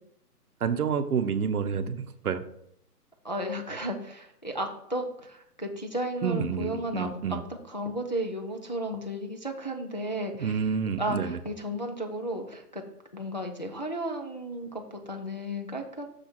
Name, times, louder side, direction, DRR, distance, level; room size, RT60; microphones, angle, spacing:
voice 1, 0.6-2.4 6.2-7.4 10.4-11.4, right 6 dB, 65° right, 10 dB, 0.9 m, -29 dB
voice 2, 3.2-7.1 7.7-10.6 11.0-12.8 13.1-16.1, right 1 dB, 30° left, 2 dB, 0.5 m, -34 dB
6.5 x 5.4 x 5.9 m, 0.72 s
hypercardioid pair, 170°, 48 cm